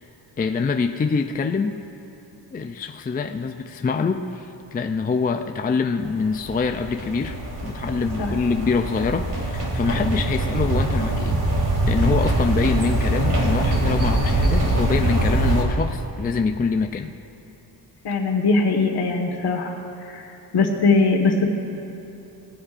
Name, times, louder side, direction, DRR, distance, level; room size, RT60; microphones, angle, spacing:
voice 1, 0.4-1.8 2.5-7.4 7.6-17.1, left 5 dB, 25° left, 6 dB, 0.4 m, -25 dB
sound 1, 6.0-15.6, right 1 dB, 45° right, 2.6 m, -23 dB
voice 2, 18.0-19.7 20.1-20.3 20.5-21.5, left 3 dB, 65° left, 2 dB, 1.6 m, -20 dB
19.5 x 14.5 x 2.5 m, 3.0 s
wide cardioid pair, 135°, 42 cm